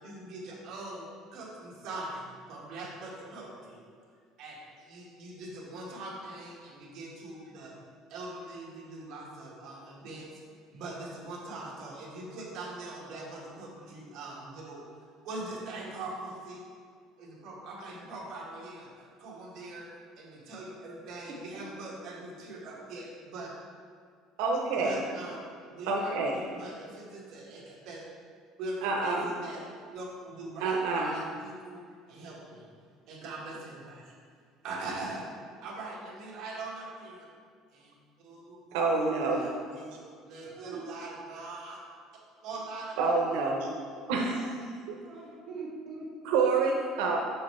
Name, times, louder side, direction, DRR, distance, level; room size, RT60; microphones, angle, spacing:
voice 1, 0.0-3.8 4.4-7.7 8.1-10.4 10.7-14.9 15.2-16.6 17.2-19.9 20.2-23.5 24.8-25.4 25.6-28.0 28.6-29.6 29.9-32.7 33.1-34.2 34.6-35.3 35.6-37.3 37.7-37.9 38.2-40.0 40.3-41.8 42.4-43.0, right 2 dB, 45° right, -5 dB, 1.7 m, -42 dB
voice 2, 21.5-21.9 40.4-40.8 45.0-46.5, right 3 dB, 25° right, -8 dB, 1.7 m, -43 dB
voice 3, 24.4-25.0 25.9-26.4 28.8-29.3 30.6-31.1 38.7-39.5 43.0-43.7 44.1-44.5 46.2-47.2, right 4 dB, 90° right, 0 dB, 0.8 m, -27 dB
6.6 x 6.5 x 3.2 m, 2.1 s
cardioid pair, 175°, 0 cm